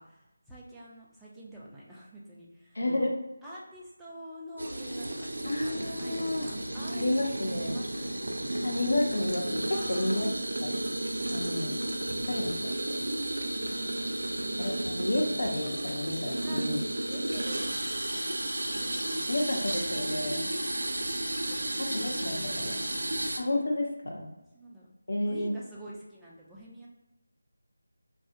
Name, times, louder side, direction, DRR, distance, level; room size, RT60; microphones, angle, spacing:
voice 1, 0.0-8.1 9.7-10.3 16.4-16.6 17.1-17.8 18.1-18.4 18.7-20.7 21.5-23.2 24.5-24.9 25.2-26.9, right 1 dB, ahead, -9 dB, 0.4 m, -48 dB
voice 2, 2.7-3.1 5.4-6.5 7.0-7.7 8.6-10.3 10.6-10.7 11.3-11.7 12.3-12.6 12.9-13.0 14.6-16.8 19.3-20.4 21.9-22.8 23.4-24.3 25.1-25.5, left 1 dB, 70° left, -1 dB, 0.6 m, -31 dB
sound 1, 4.6-23.4, right 1 dB, 80° right, 0.4 m, -33 dB
2.4 x 2.1 x 3.7 m, 0.98 s
figure-of-eight pair, 170°, 0 cm